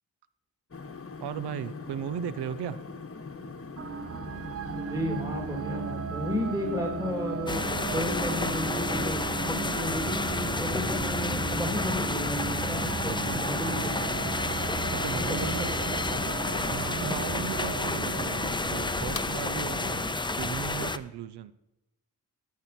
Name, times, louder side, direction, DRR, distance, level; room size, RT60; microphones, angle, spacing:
sound 1, 0.7-20.1, left 4 dB, 35° left, 1.1 m, -42 dB
voice 1, 1.2-2.8 13.1-13.5 14.9-15.8 16.7-21.5, right 9 dB, 75° right, 16 dB, 0.6 m, -36 dB
sound 2, 3.8-20.0, right 7 dB, 35° right, 0.5 m, -36 dB
voice 2, 4.6-14.1 14.9-16.2, left 1 dB, 10° right, 0 dB, 3.0 m, -34 dB
sound 3, 7.5-21.0, left 3 dB, 10° left, 0.6 m, -30 dB
13.0 x 8.6 x 4.3 m, 0.99 s
cardioid pair, 60°, 40 cm